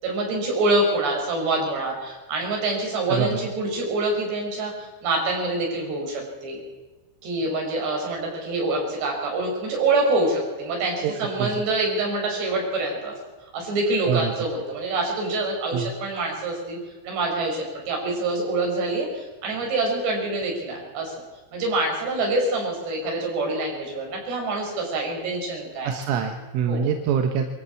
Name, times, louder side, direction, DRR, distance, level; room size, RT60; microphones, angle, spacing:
voice 1, 0.0-6.6 7.2-13.2 13.5-16.8 17.0-21.2 21.5-25.9 26.7-26.9, right 2 dB, 60° right, 0 dB, 7.6 m, -26 dB
voice 2, 3.1-3.4 11.0-11.1 11.4-11.6 14.1-14.3 15.7-15.9 25.8-27.5, right 7 dB, 90° right, 5 dB, 3.9 m, -25 dB
24.0 x 14.5 x 8.5 m, 1.2 s
omnidirectional pair, 5.5 m